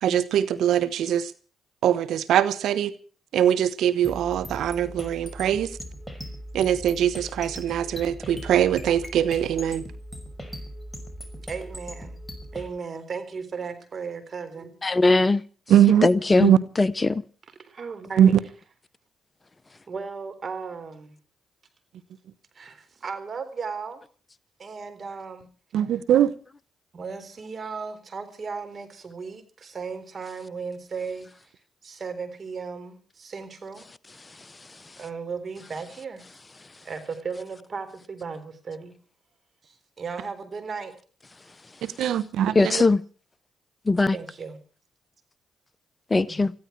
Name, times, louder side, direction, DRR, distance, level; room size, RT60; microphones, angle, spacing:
voice 1, 0.0-1.3 1.8-2.9 3.3-5.8 6.5-9.8 15.7-16.1 16.4-16.6 18.2-18.4 25.7-26.3 41.8-42.8, right 10 dB, 75° right, 1.0 m, -21 dB
sound 1, 4.0-12.7, equal, ahead, 5.9 m, -39 dB
voice 2, 11.4-12.2 12.5-14.8 17.6-18.3 19.9-21.2 22.5-24.0 24.6-25.5 26.9-31.5 31.8-33.9 35.0-36.2 36.8-38.9 39.6-40.9 44.1-44.6 46.3-46.4, right 5 dB, 50° right, 3.8 m, -36 dB
voice 3, 14.8-15.4 16.0-16.5 16.8-17.2 42.6-43.0 43.9-44.2 46.1-46.5, left 3 dB, 25° left, 0.7 m, -19 dB
20.5 x 15.0 x 4.6 m
supercardioid pair, 55°, 0 cm